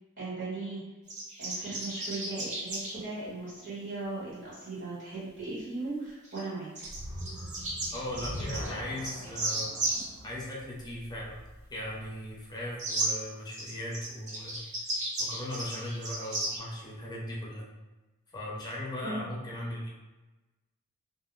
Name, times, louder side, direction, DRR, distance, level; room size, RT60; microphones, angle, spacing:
voice 1, 0.2-0.8 1.4-6.9 19.0-19.2, right 3 dB, 55° right, -9 dB, 1.1 m, -37 dB
sound 1, 1.1-2.9 6.2-6.4 6.8-10.1 12.8-13.1 13.5-16.6, right 2 dB, 35° right, 0.6 m, -34 dB
sound 2, 6.8-12.1, equal, 75° right, 1.0 m, -42 dB
voice 2, 7.9-9.7 10.2-11.4 11.7-14.6 15.2-17.7 18.3-19.9, left 1 dB, 20° left, -5 dB, 0.6 m, -38 dB
2.4 x 2.1 x 3.0 m, 1.1 s
head